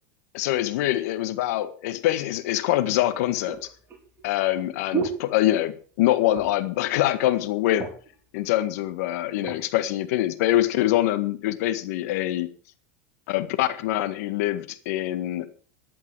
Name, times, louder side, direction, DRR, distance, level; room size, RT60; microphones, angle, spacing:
voice 1, 0.3-3.6 4.2-7.9 8.3-12.5 13.3-15.5, left 14 dB, 70° left, 11 dB, 1.7 m, -24 dB
sound 1, 1.9-2.0 2.8-6.0 6.2-6.7 7.1-7.2 7.5-8.2 8.9-9.6 10.2-10.4, right 7 dB, 25° right, 4.8 m, -35 dB
15.0 x 11.0 x 4.8 m, 0.41 s
hypercardioid pair, 105°, 9 cm